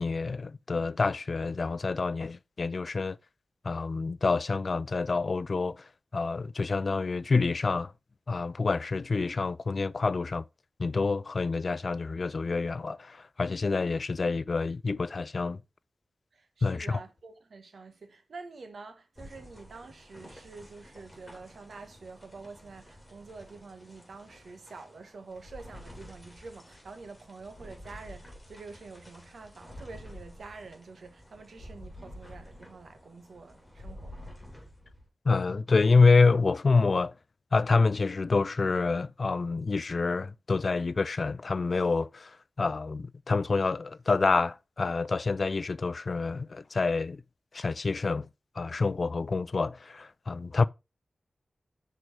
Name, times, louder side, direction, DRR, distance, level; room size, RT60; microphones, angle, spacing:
voice 1, 0.0-3.2 3.6-7.9 8.3-10.4 10.8-15.6 16.6-17.0 35.3-37.1 37.5-47.2 47.5-48.3 48.6-50.6, left 4 dB, 55° left, 0.3 m, -27 dB
voice 2, 16.3-34.3, right 4 dB, 80° right, 1.2 m, -47 dB
sound 1, 19.2-35.1, left 1 dB, 15° left, 3.1 m, -50 dB
6.2 x 4.5 x 4.8 m
wide cardioid pair, 80°, 0 cm